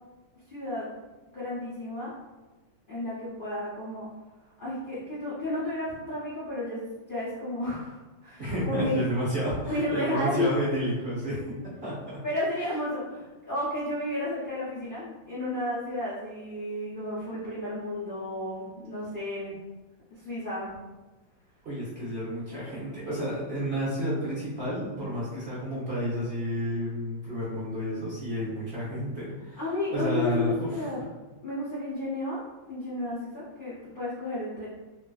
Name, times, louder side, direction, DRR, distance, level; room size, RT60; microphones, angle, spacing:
voice 1, 0.5-0.9 1.3-2.1 2.9-4.1 4.6-6.8 7.1-9.0 9.6-10.5 12.2-19.6 20.1-20.7 29.6-31.0 31.4-34.7, left 1 dB, 50° left, -11 dB, 0.6 m, -32 dB
voice 2, 8.4-12.2 21.6-29.6 29.9-30.7, equal, 45° right, -11 dB, 1.0 m, -31 dB
3.1 x 2.6 x 2.3 m, 1.2 s
omnidirectional pair, 2.0 m